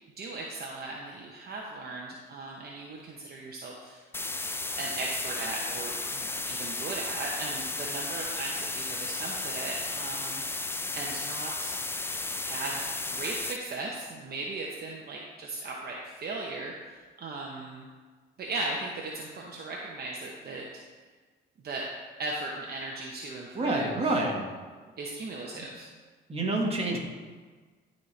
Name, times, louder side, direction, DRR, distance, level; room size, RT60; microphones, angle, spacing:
voice 1, 0.2-4.0 4.8-10.4 11.0-11.8 12.4-17.9 18.4-20.7 21.6-21.8 22.2-24.2 25.0-25.9, right 2 dB, 50° right, -2 dB, 0.9 m, -37 dB
sound 1, 4.1-13.6, left 2 dB, 10° left, 0.4 m, -34 dB
voice 2, 23.5-24.4 26.3-27.0, right 2 dB, 30° right, -1 dB, 1.6 m, -27 dB
12.0 x 4.3 x 3.3 m, 1.4 s
cardioid pair, 90°, 20 cm